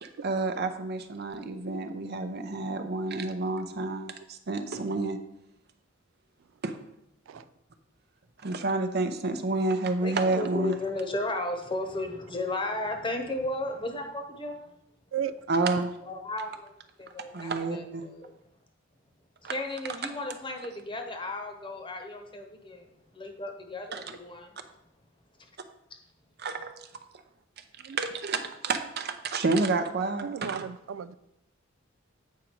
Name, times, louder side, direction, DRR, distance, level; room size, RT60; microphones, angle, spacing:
voice 1, 0.0-5.2 6.6-6.7 7.3-7.4 8.4-10.7 15.5-15.9 17.3-18.0 19.4-19.5 23.9-24.2 26.4-26.7 28.0-30.6, right 3 dB, 55° right, 8 dB, 0.7 m, -29 dB
voice 2, 10.0-14.7 16.1-16.7 17.0-18.3 19.4-24.6, left 2 dB, 25° left, 5 dB, 1.0 m, -34 dB
voice 3, 15.1-15.5 15.8-15.9 27.8-28.0 30.2-31.1, right 8 dB, 85° right, 14 dB, 0.4 m, -35 dB
8.3 x 5.1 x 4.5 m, 0.81 s
head